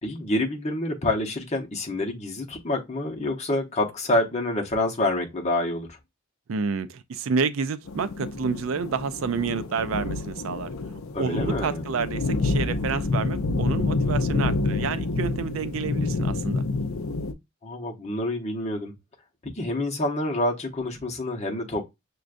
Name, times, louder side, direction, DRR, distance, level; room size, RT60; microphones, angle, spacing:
voice 1, 0.0-6.0 11.1-11.8 17.6-18.9 19.4-21.8, left 1 dB, 30° left, 0.8 m, -27 dB
voice 2, 6.5-10.7 11.2-16.7, right 5 dB, 70° right, 0.4 m, -29 dB
sound 1, 7.9-17.3, left 3 dB, 70° left, 0.5 m, -28 dB
6.1 x 2.2 x 2.5 m
head